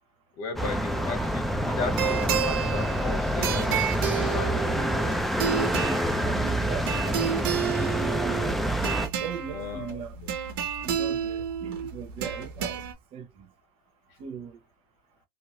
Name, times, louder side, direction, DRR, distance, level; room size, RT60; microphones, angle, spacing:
voice 1, 0.4-4.8 9.5-10.3, left 5 dB, 60° left, 1.4 m, -37 dB
sound 1, 0.6-9.1, equal, ahead, 0.5 m, -27 dB
sound 2, 1.9-12.9, right 8 dB, 90° right, 0.9 m, -31 dB
voice 2, 5.5-5.9 6.3-8.7 9.2-10.2 10.8-12.8 13.1-13.5 14.2-14.6, right 8 dB, 50° right, 0.9 m, -39 dB
3.1 x 2.1 x 2.8 m
supercardioid pair, 115°, 12 cm